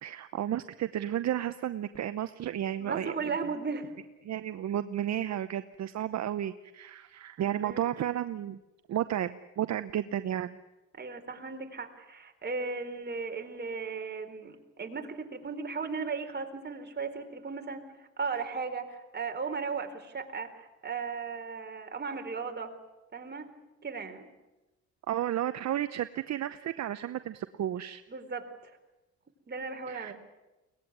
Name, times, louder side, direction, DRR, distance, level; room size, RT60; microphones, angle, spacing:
voice 1, 0.0-3.3 4.3-8.6 8.9-10.6 25.1-28.0 29.9-30.1, right 11 dB, 60° right, 11 dB, 0.9 m, -32 dB
voice 2, 2.8-3.9 7.4-8.0 10.9-17.8 18.2-22.8 23.1-23.5 23.8-24.2 28.1-28.7 29.5-30.1, right 5 dB, 35° right, 4 dB, 4.0 m, -36 dB
23.0 x 19.0 x 9.8 m, 1.0 s
cardioid pair, 90°, 30 cm